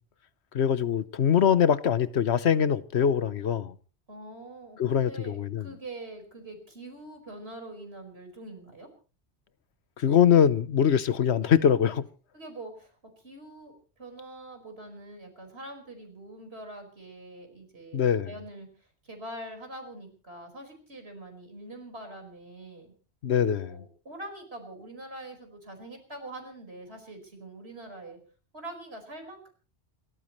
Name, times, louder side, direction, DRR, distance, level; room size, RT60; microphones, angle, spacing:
voice 1, 0.5-3.7 4.8-5.7 10.0-12.0 17.9-18.3 23.2-23.8, left 8 dB, 80° left, 1.2 m, -23 dB
voice 2, 4.1-8.9 12.3-18.0 18.2-22.9 23.6-28.2 28.5-29.5, right 1 dB, 75° right, 5.3 m, -44 dB
28.0 x 14.0 x 3.1 m
omnidirectional pair, 1.1 m